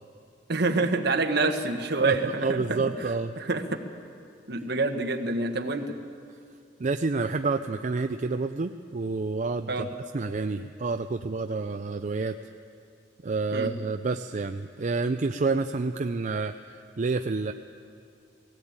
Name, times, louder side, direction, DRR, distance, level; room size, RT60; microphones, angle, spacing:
voice 1, 0.5-2.8 3.4-3.8 4.5-5.9 9.7-9.9 13.5-13.7, right 3 dB, 65° right, 6 dB, 1.4 m, -27 dB
voice 2, 2.0-3.3 6.8-9.9 10.1-12.4 13.2-17.5, right 3 dB, 45° right, 7 dB, 0.5 m, -29 dB
17.5 x 17.0 x 8.8 m, 2.4 s
head